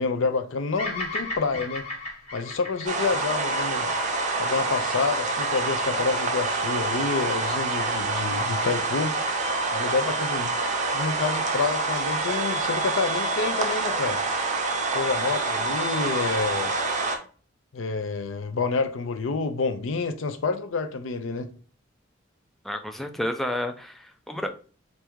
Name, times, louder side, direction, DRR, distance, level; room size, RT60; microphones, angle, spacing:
voice 1, 0.0-1.9 2.3-3.9 4.4-9.1 9.7-10.5 10.9-14.2 14.9-16.8 17.7-21.5, left 4 dB, 75° left, 0.5 m, -28 dB
Bird vocalization bird call bird song, 0.8-5.1, left 2 dB, 35° left, 1.5 m, -35 dB
sound 1, 2.9-17.2, right 3 dB, 40° right, 0.7 m, -27 dB
voice 2, 22.6-24.5, left 1 dB, ahead, 0.3 m, -30 dB
3.4 x 2.6 x 4.5 m
head